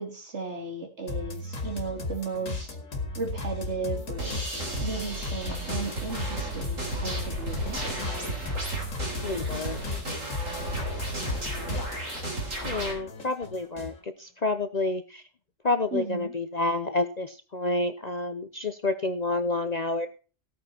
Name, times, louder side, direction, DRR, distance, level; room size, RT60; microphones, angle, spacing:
voice 1, 0.0-2.7 3.1-4.4 4.8-7.9 15.9-16.3, right 3 dB, 60° right, 2 dB, 3.1 m, -35 dB
sound 1, 1.1-12.3 12.6-14.0, left 3 dB, 90° left, 2.6 m, -35 dB
sound 2, 4.2-12.9, right 2 dB, 80° right, 4.9 m, -34 dB
voice 2, 9.2-9.8 12.6-15.2 15.6-20.1, left 2 dB, 40° left, 9 dB, 0.7 m, -29 dB
15.5 x 9.0 x 4.3 m, 0.37 s
omnidirectional pair, 1.3 m